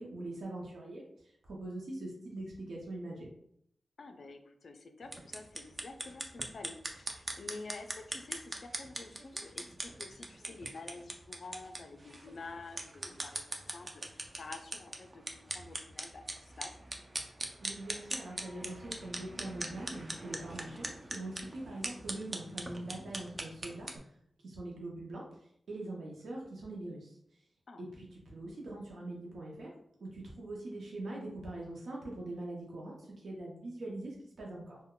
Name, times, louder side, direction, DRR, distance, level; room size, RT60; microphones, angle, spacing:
voice 1, 0.0-3.3 17.6-23.9 24.4-27.2 27.8-29.7 30.0-34.8, right 2 dB, 80° right, -3 dB, 0.6 m, -43 dB
voice 2, 4.0-16.8 27.7-27.9, left 3 dB, 60° left, 6 dB, 0.3 m, -49 dB
sound 1, 5.0-24.0, right 1 dB, 30° right, 0.4 m, -42 dB
3.6 x 2.1 x 2.2 m, 0.71 s
wide cardioid pair, 115°, 0 cm